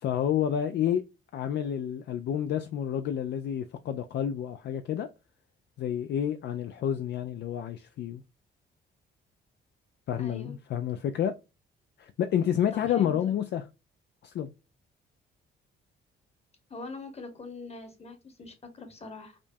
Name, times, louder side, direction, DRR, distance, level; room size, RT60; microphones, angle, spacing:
voice 1, 0.0-1.0 1.3-5.1 5.8-8.2 10.1-11.3 12.0-13.6 14.2-14.5, left 9 dB, 60° left, 0.4 m, -29 dB
voice 2, 10.2-10.5 12.7-13.2 16.7-19.4, left 3 dB, 30° left, 1.2 m, -43 dB
5.0 x 2.3 x 2.6 m
cardioid pair, 90°, 20 cm